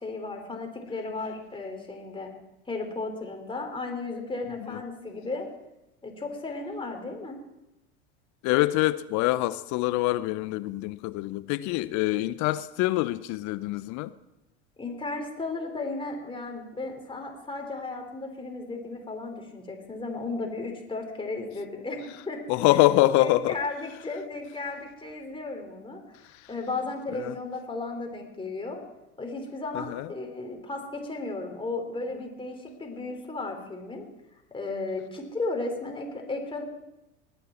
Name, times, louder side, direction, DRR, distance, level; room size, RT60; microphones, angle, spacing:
voice 1, 0.0-2.3 2.7-5.5 6.0-7.4 14.8-22.4 23.2-26.0 26.5-28.8 29.2-34.1 34.5-36.6, left 3 dB, 15° left, 3.4 m, -34 dB
voice 2, 8.4-14.1 22.5-23.6 27.1-27.4 29.7-30.1, left 17 dB, 55° left, 0.8 m, -25 dB
20.5 x 9.0 x 4.4 m
hypercardioid pair, 85°, 35 cm